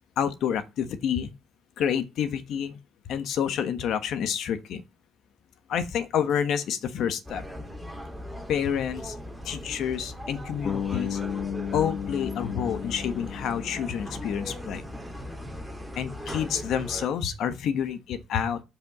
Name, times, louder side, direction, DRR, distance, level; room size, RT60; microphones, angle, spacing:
voice 1, 0.2-1.3 1.8-2.8 3.0-4.8 5.7-7.4 8.5-9.2 9.4-11.2 11.7-14.9 15.9-18.6, left 8 dB, 80° left, 1.2 m, -28 dB
sound 1, 7.3-17.1, equal, ahead, 2.9 m, -39 dB
Bass guitar, 10.6-14.7, left 8 dB, 60° left, 1.0 m, -34 dB
10.5 x 5.5 x 7.3 m
cardioid pair, 110°, 0 cm